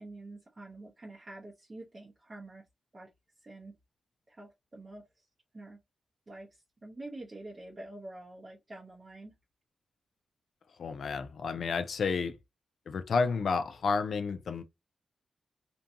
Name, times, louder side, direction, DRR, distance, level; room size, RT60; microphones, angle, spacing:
voice 1, 0.0-2.6 2.9-3.1 3.4-3.7 4.3-5.0 5.5-5.8 6.3-9.3, right 2 dB, 35° right, 0.7 m, -47 dB
voice 2, 10.8-12.4 12.9-14.6, left 5 dB, 75° left, 0.3 m, -31 dB
2.6 x 2.2 x 2.7 m
cardioid pair, 65°, 0 cm